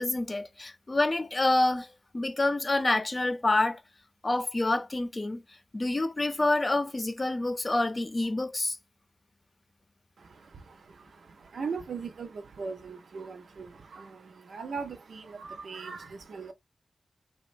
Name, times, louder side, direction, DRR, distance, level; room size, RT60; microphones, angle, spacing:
voice 1, 0.0-1.9 2.1-3.8 4.2-5.4 5.7-8.8, left 2 dB, 40° left, 0.6 m, -27 dB
voice 2, 10.2-16.5, right 5 dB, 90° right, 0.5 m, -40 dB
2.9 x 2.1 x 2.5 m
cardioid pair, 50°, 0 cm